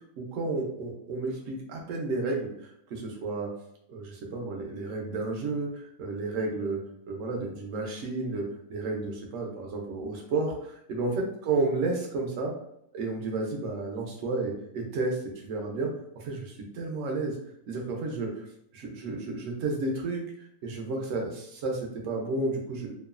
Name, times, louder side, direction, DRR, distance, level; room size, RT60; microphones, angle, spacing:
voice 1, 0.2-3.5 3.9-12.5 12.9-15.2 15.4-15.9 16.2-17.4 17.7-18.4 18.7-20.2 20.6-22.9, right 3 dB, 60° right, 1 dB, 0.9 m, -32 dB
3.0 x 2.3 x 2.3 m, 0.75 s
omnidirectional pair, 1.7 m